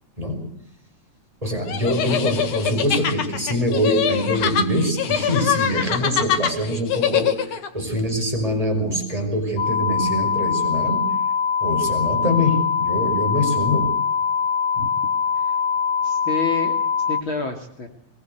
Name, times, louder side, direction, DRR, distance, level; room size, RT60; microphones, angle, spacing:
voice 1, 0.2-0.5 1.4-11.2 11.6-14.0, equal, 10° right, 2 dB, 6.1 m, -24 dB
sound 1, 1.7-7.7, left 9 dB, 90° left, 3.3 m, -23 dB
sound 2, 9.6-17.2, left 6 dB, 65° left, 2.2 m, -22 dB
voice 2, 16.0-16.7 17.1-17.9, left 4 dB, 45° left, 4 dB, 3.4 m, -28 dB
23.0 x 21.5 x 8.1 m, 0.71 s
omnidirectional pair, 3.4 m